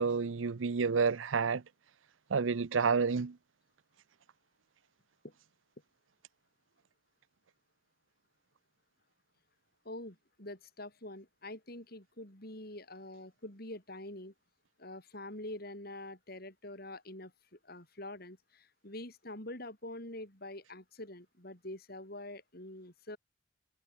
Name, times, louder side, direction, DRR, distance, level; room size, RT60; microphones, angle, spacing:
voice 1, 0.0-1.6 2.3-3.4, right 5 dB, 85° right, 0.6 m, -29 dB
voice 2, 9.9-14.3 14.8-23.2, left 1 dB, 50° left, 7.1 m, -45 dB
head